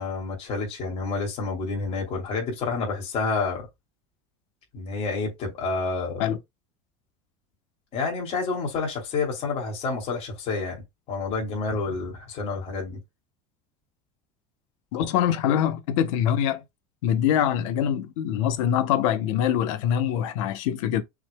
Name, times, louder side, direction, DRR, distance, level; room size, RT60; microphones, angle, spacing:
voice 1, 0.0-3.7 4.7-6.3 7.9-13.0, left 4 dB, 40° left, 3.0 m, -29 dB
voice 2, 14.9-16.6 17.0-21.0, left 10 dB, 85° left, 1.0 m, -24 dB
6.1 x 3.7 x 2.3 m
cardioid pair, 155°, 16 cm